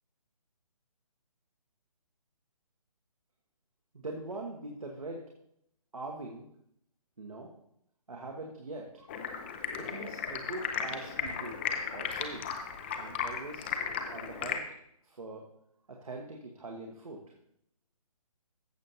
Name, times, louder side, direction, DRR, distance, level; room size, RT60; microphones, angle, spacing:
voice 1, 3.9-5.3 5.9-6.5 7.2-7.5 8.1-11.6 11.9-12.5 13.0-13.7 14.1-14.6 15.0-15.5 15.9-17.3, right 2 dB, 65° right, 1 dB, 1.4 m, -42 dB
Stream, 9.1-14.6, left 7 dB, 15° left, 0.5 m, -35 dB
15.0 x 6.5 x 2.8 m, 0.73 s
figure-of-eight pair, 140°, 19 cm